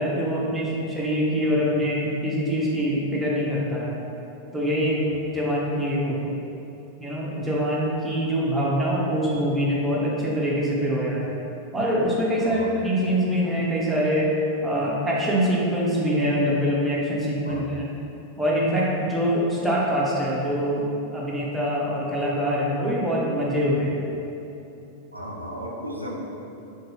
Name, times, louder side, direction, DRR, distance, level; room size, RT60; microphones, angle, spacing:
voice 1, 0.0-4.0 4.5-5.1 5.3-6.2 7.0-11.3 11.7-14.3 14.6-17.9 18.4-20.9 21.1-23.9, equal, 10° right, -6 dB, 0.6 m, -24 dB
voice 2, 12.4-12.9 17.4-17.7 23.7-23.9 25.1-26.1, equal, 90° right, -3 dB, 0.3 m, -35 dB
2.6 x 2.5 x 3.1 m, 2.9 s
figure-of-eight pair, 90°, 0 cm